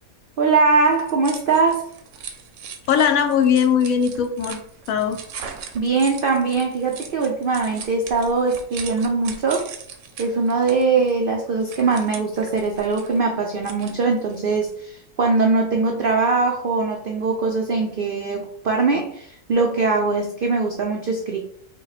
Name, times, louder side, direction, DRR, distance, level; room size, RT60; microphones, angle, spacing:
voice 1, 0.4-1.9 5.7-9.7 10.2-21.4, right 4 dB, 85° right, 2 dB, 0.4 m, -21 dB
sound 1, 0.9-14.7, right 6 dB, 65° right, 0.8 m, -40 dB
voice 2, 2.9-4.6 4.9-5.2, left 7 dB, 70° left, 6 dB, 0.9 m, -19 dB
5.4 x 2.2 x 4.0 m, 0.65 s
omnidirectional pair, 1.7 m